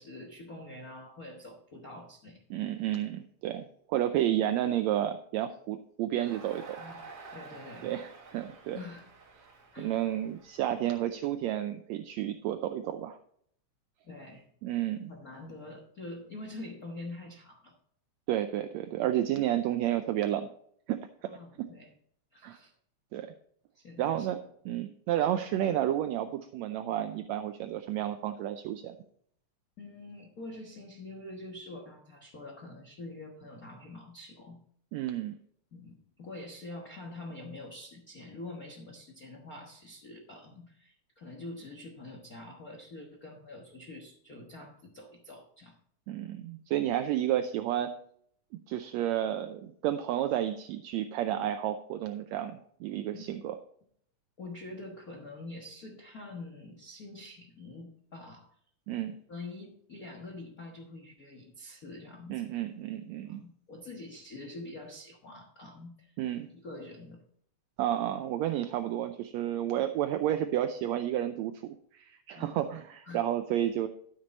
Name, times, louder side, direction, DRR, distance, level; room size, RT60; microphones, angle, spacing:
voice 1, 0.0-2.4 6.8-7.0 7.3-7.9 8.7-9.0 9.7-9.9 14.0-14.5 15.1-17.8 21.2-21.9 22.3-22.7 23.7-24.3 29.8-34.6 35.7-45.8 53.1-53.2 54.4-58.5 59.3-62.4 63.3-66.1 66.5-67.2 72.3-72.7 73.0-73.2, left 2 dB, 50° left, 1 dB, 1.0 m, -45 dB
voice 2, 2.5-6.8 7.8-8.8 9.8-13.2 14.6-15.1 18.3-20.5 20.9-21.0 22.4-22.6 23.1-23.3 24.0-24.4 24.7-29.0 34.9-35.4 46.1-47.9 48.7-53.6 58.9-59.2 62.3-63.4 66.2-66.5 67.8-73.9, right 12 dB, 80° right, 8 dB, 1.7 m, -31 dB
Crowd, 6.2-11.4, right 4 dB, 40° right, 1.6 m, -50 dB
13.0 x 6.8 x 4.1 m, 0.65 s
omnidirectional pair, 3.5 m